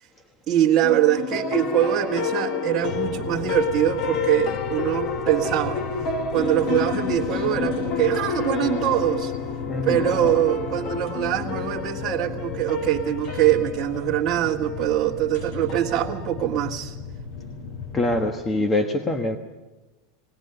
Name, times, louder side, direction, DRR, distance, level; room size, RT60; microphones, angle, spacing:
voice 1, 0.5-5.8 6.3-9.3 9.8-16.9, right 13 dB, 30° right, -7 dB, 1.8 m, -23 dB
sound 1, 0.8-16.4, left 6 dB, 45° left, 1.5 m, -30 dB
sound 2, 2.8-18.3, left 5 dB, 75° left, 7.4 m, -36 dB
voice 2, 9.7-10.1 17.9-19.4, left 2 dB, 20° left, 5 dB, 1.3 m, -24 dB
20.0 x 19.5 x 6.9 m, 1.1 s
supercardioid pair, 140°, 0 cm